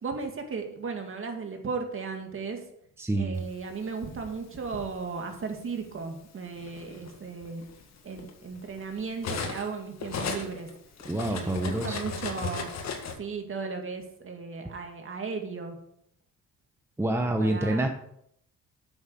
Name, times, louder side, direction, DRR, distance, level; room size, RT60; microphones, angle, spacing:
voice 1, 0.0-2.6 3.1-7.7 8.0-10.7 11.3-12.7 13.2-15.8 17.4-17.8, right 4 dB, 45° right, 4 dB, 2.2 m, -36 dB
voice 2, 3.0-3.4 11.0-12.0 17.0-17.9, right 1 dB, 10° right, 4 dB, 1.0 m, -27 dB
Cutlery silverware, 3.6-4.9 5.9-6.0 6.5-9.7 10.0-13.1, left 5 dB, 60° left, 1.8 m, -36 dB
8.9 x 7.3 x 5.3 m, 0.72 s
cardioid pair, 90°, 30 cm